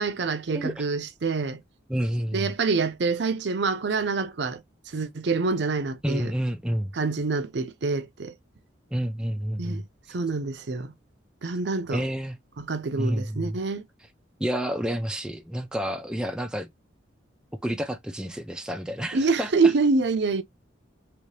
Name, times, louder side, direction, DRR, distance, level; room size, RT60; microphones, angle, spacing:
voice 1, 0.0-1.6 2.3-4.6 4.9-6.3 6.9-8.3 9.6-9.8 10.1-10.9 11.4-12.0 12.6-13.9 19.1-20.4, right 4 dB, 60° right, 0.6 m, -26 dB
voice 2, 0.5-0.9 1.9-2.5 6.0-6.9 8.9-9.8 11.9-12.3 13.0-13.6 14.4-16.7 17.6-19.7, equal, 5° right, 0.3 m, -29 dB
3.0 x 2.9 x 3.2 m
head